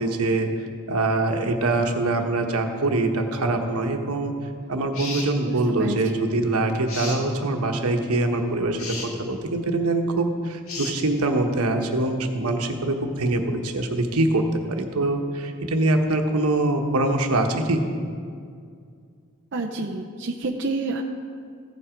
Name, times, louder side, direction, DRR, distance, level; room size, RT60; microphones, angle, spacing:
voice 1, 0.0-4.3 4.7-17.8, right 2 dB, 85° right, 4 dB, 1.1 m, -24 dB
sound 1, 4.9-5.3 6.9-7.2 8.8-9.1 10.7-11.0, left 3 dB, 70° left, 1.8 m, -33 dB
voice 2, 5.4-6.3 19.5-21.0, right 3 dB, 55° right, 0 dB, 0.6 m, -29 dB
15.0 x 7.5 x 5.1 m, 2.2 s
head